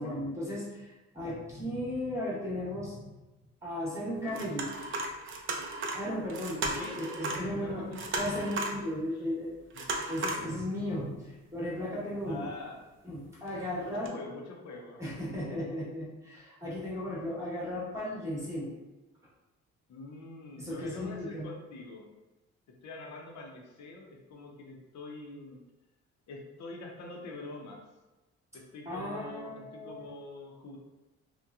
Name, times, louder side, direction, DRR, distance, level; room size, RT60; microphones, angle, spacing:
voice 1, 0.0-3.1 3.6-4.7 5.9-7.9 8.1-9.5 10.1-12.5 13.0-14.1 15.0-18.7 20.6-21.5 28.8-30.1, left 1 dB, 10° right, -7 dB, 0.9 m, -35 dB
sound 1, 4.2-7.5 7.7-8.9 9.7-10.5 10.9-11.0 12.1-12.4 13.5-13.6 14.0-14.1, right 2 dB, 40° right, 0.5 m, -35 dB
voice 2, 7.4-8.1 9.1-9.2 9.7-10.2 12.3-12.8 13.8-15.3 19.9-22.1 22.7-25.6 26.3-27.9 28.5-30.8, left 2 dB, 65° left, 0 dB, 0.7 m, -45 dB
2.9 x 2.1 x 2.3 m, 1.1 s
cardioid pair, 90°, 30 cm